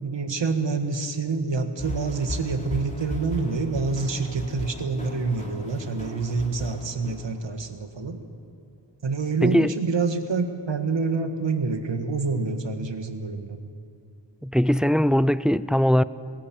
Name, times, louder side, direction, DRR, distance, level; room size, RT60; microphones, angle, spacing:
voice 1, 0.0-8.2 9.0-13.6, right 4 dB, 80° right, 1.7 m, -27 dB
sound 1, 1.8-7.8, equal, 15° left, 3.4 m, -37 dB
voice 2, 9.4-9.7 14.4-16.0, equal, ahead, 0.4 m, -20 dB
19.0 x 18.0 x 8.7 m
wide cardioid pair, 55°, 43 cm